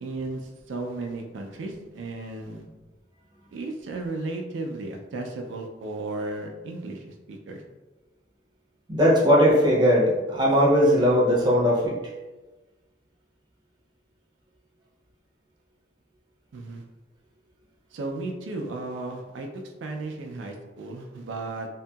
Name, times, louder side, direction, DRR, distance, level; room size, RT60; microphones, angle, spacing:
voice 1, 0.0-2.7 3.5-7.6 16.5-16.8 17.9-19.5 19.8-21.7, right 2 dB, 85° right, 2 dB, 0.4 m, -34 dB
voice 2, 8.9-11.9, equal, 25° right, -4 dB, 0.5 m, -19 dB
2.7 x 2.6 x 2.3 m, 1.2 s
head